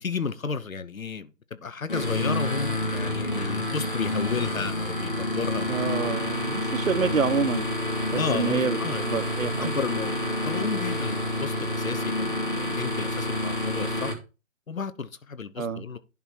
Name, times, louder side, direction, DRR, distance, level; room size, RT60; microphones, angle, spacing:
voice 1, 0.0-1.3 1.6-5.7 8.2-9.0 9.6-14.1 14.7-16.0, left 5 dB, 85° left, 1.1 m, -32 dB
sound 1, 1.9-14.1, left 1 dB, 40° left, 2.0 m, -28 dB
voice 2, 5.7-7.8 8.1-8.8 9.1-9.7 15.6-15.8, right 5 dB, 75° right, 1.0 m, -27 dB
11.0 x 3.9 x 4.5 m
figure-of-eight pair, 180°, 40 cm